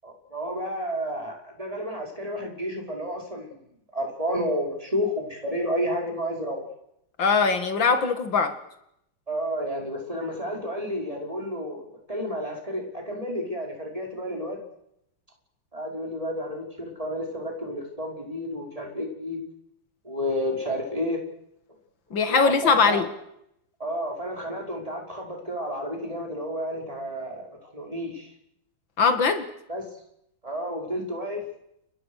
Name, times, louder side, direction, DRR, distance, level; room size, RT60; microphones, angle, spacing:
voice 1, 0.0-3.6 3.9-6.7 9.3-14.6 15.7-19.4 20.0-21.2 22.3-23.0 23.8-28.3 29.7-29.8 30.4-31.4, equal, 15° right, 1 dB, 5.6 m, -31 dB
voice 2, 7.2-8.6 22.1-23.1 29.0-29.5, left 5 dB, 75° left, 8 dB, 2.8 m, -21 dB
30.0 x 23.0 x 6.5 m, 0.79 s
omnidirectional pair, 2.1 m